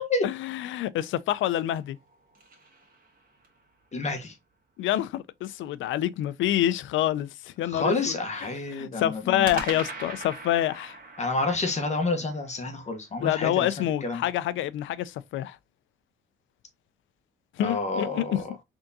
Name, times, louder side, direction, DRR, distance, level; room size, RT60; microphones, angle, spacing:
voice 1, 0.2-2.0 4.8-11.0 13.2-15.6 17.5-18.4, left 12 dB, 75° left, 0.4 m, -27 dB
sound 1, 1.7-3.6 9.4-13.7, right 3 dB, 45° right, 1.5 m, -41 dB
voice 2, 3.9-4.3 7.6-9.6 11.2-13.7 14.0-14.2 17.6-18.4, left 3 dB, 35° left, 1.1 m, -29 dB
3.7 x 3.5 x 2.6 m
cardioid pair, 90°, 20 cm